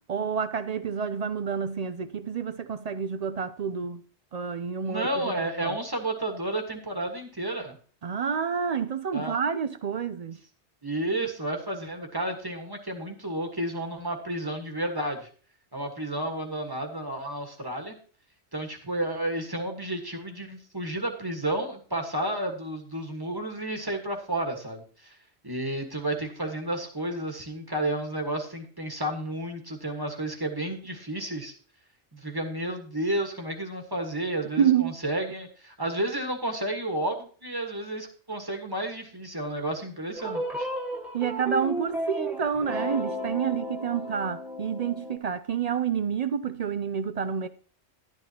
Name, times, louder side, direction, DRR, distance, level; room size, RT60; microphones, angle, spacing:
voice 1, 0.1-4.0 4.3-5.2 5.6-5.8 8.0-10.4 34.6-34.9 41.1-47.5, right 7 dB, 60° right, 0.4 m, -28 dB
voice 2, 4.8-7.8 9.1-9.4 10.8-15.3 15.7-17.9 18.5-25.2 25.4-31.5 32.1-40.7, right 1 dB, 20° right, 1.4 m, -31 dB
sound 1, 40.1-45.2, equal, ahead, 1.3 m, -33 dB
11.5 x 10.5 x 2.8 m
omnidirectional pair, 1.2 m